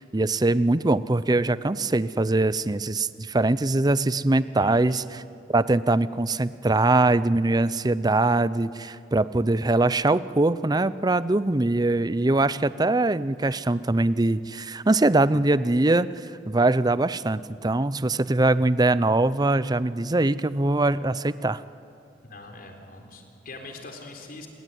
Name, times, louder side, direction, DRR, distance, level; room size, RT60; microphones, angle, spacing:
voice 1, 0.0-5.0 5.5-16.1 16.5-21.6, right 2 dB, 20° right, 16 dB, 0.6 m, -22 dB
voice 2, 4.6-5.1 22.2-24.5, left 2 dB, 50° left, 3 dB, 3.8 m, -43 dB
28.0 x 22.0 x 9.4 m, 2.6 s
head